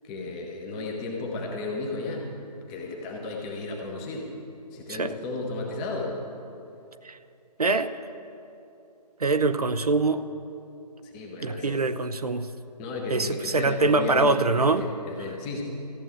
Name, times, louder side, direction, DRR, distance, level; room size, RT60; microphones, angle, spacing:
voice 1, 0.0-2.3 2.7-4.3 4.7-6.2 11.0-11.8 12.8-15.6, left 3 dB, 10° left, 0 dB, 0.8 m, -34 dB
voice 2, 7.6-8.0 9.2-10.2 11.4-12.5 13.1-14.8, right 3 dB, 65° right, 10 dB, 0.7 m, -24 dB
14.0 x 7.8 x 8.7 m, 2.8 s
figure-of-eight pair, 150°, 21 cm